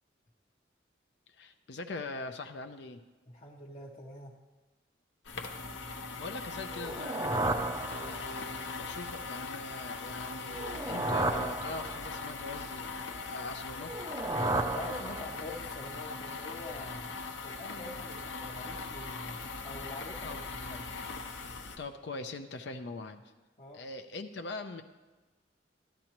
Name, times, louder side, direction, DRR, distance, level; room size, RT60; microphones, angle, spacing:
voice 1, 1.3-3.0 5.9-13.9 20.2-20.4 20.7-20.9 21.8-23.2 23.7-24.8, left 3 dB, 65° left, 7 dB, 0.5 m, -42 dB
voice 2, 3.3-4.3 14.7-17.2 17.4-20.7 23.6-23.8, left 2 dB, 35° left, -3 dB, 0.8 m, -45 dB
sound 1, 5.3-21.8, left 4 dB, 85° left, 0.9 m, -40 dB
sound 2, 6.7-8.6 10.5-12.3 13.8-15.6, right 2 dB, 15° right, 0.4 m, -33 dB
12.5 x 12.0 x 3.0 m, 1.2 s
head